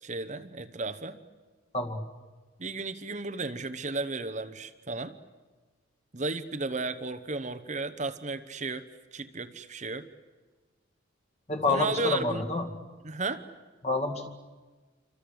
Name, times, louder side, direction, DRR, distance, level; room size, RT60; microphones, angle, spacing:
voice 1, 0.0-1.2 2.6-5.1 6.1-8.8 9.1-10.1 11.7-12.5 13.0-13.4, right 3 dB, 35° right, 10 dB, 1.0 m, -33 dB
voice 2, 11.5-12.7 13.8-14.3, left 3 dB, 30° left, 4 dB, 2.2 m, -28 dB
28.5 x 25.5 x 8.0 m, 1.3 s
head